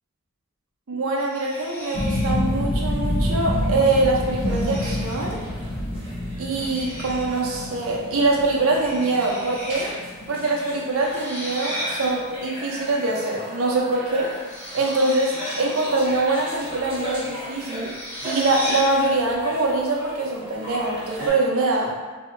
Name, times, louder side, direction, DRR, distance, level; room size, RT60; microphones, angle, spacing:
voice 1, 0.9-5.4 6.4-9.9 10.3-14.3 14.7-17.9 18.2-22.1, right 2 dB, 90° right, -2 dB, 0.6 m, -23 dB
sound 1, 1.2-2.4 3.6-3.9 4.4-5.5 6.6-7.5 8.8-9.9 10.1-10.2 11.0-12.1 14.0-16.0 17.5-19.0, equal, 10° left, 0.8 m, -35 dB
sound 2, 1.5-21.3, equal, 25° right, 1.1 m, -39 dB
sound 3, 1.9-12.1 12.4-13.1 13.5-13.6, left 1 dB, 40° left, 0.5 m, -28 dB
2.8 x 2.1 x 3.7 m, 1.4 s
head